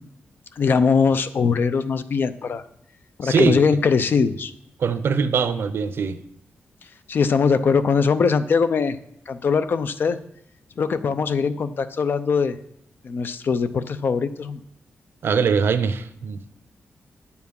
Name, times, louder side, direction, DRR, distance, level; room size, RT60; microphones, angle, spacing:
voice 1, 0.6-2.6 3.2-4.5 7.1-9.0 9.3-10.2 10.8-12.5 13.0-14.6, left 5 dB, 55° left, 12 dB, 0.6 m, -21 dB
voice 2, 3.2-3.6 4.8-6.2 15.2-16.5, right 5 dB, 65° right, 12 dB, 0.7 m, -22 dB
9.5 x 7.1 x 5.4 m, 0.73 s
wide cardioid pair, 140°, 4 cm